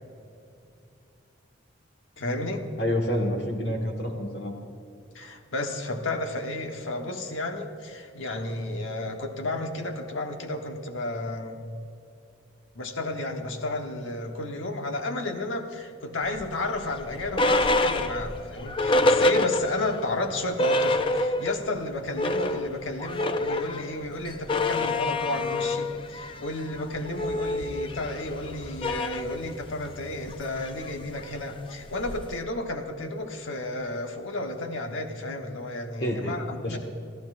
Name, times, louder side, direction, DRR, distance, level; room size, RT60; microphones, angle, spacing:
voice 1, 2.2-2.6 5.1-11.6 12.7-36.8, left 2 dB, 75° left, 4 dB, 1.2 m, -32 dB
voice 2, 2.8-4.5 36.0-36.8, equal, 55° left, 2 dB, 1.6 m, -28 dB
Metal creaking, 16.3-20.0 20.3-20.4 20.6-21.7 22.0-32.4, left 2 dB, 25° left, 0.4 m, -27 dB
26.0 x 14.5 x 2.5 m, 2.6 s
head